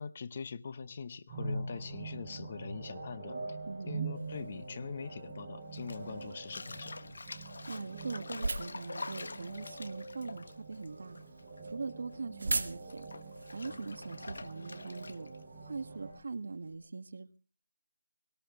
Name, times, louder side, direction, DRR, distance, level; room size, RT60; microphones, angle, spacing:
voice 1, 0.0-3.4 3.9-7.0, left 6 dB, 30° left, 16 dB, 0.8 m, -43 dB
sound 1, 1.3-16.1, right 3 dB, 20° right, 6.9 m, -44 dB
voice 2, 3.6-4.1 7.7-11.2 11.6-13.0 13.5-15.3 15.6-17.4, right 4 dB, 55° right, 10 dB, 1.3 m, -42 dB
sound 2, 4.1-16.8, right 3 dB, 80° right, 1.9 m, -44 dB
Bathtub (filling or washing), 5.7-11.6 11.9-15.4, left 3 dB, 65° left, 1.3 m, -46 dB
18.5 x 17.0 x 3.5 m, 0.36 s
hypercardioid pair, 175°, 0 cm